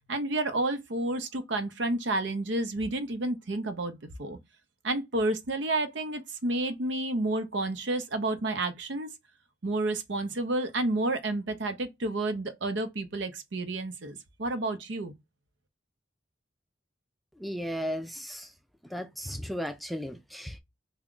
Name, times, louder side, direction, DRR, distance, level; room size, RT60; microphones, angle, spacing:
voice 1, 0.1-4.4 4.8-9.1 9.6-15.1, right 2 dB, 70° right, 0.7 m, -30 dB
voice 2, 17.4-18.5 18.9-20.6, equal, ahead, 0.4 m, -35 dB
3.5 x 2.2 x 3.7 m
head